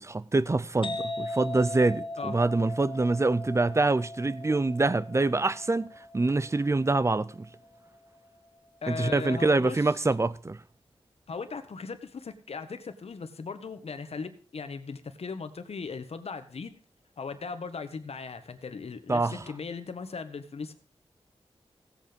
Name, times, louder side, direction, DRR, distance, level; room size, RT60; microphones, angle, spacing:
voice 1, 0.0-7.5 8.9-10.6 19.1-19.4, right 3 dB, 25° right, 0.6 m, -25 dB
sound 1, 0.8-8.3, left 2 dB, 55° left, 1.4 m, -39 dB
voice 2, 8.8-9.8 11.3-16.7 17.2-20.7, left 5 dB, 70° left, 1.4 m, -38 dB
16.0 x 8.3 x 5.2 m
wide cardioid pair, 85°, 11 cm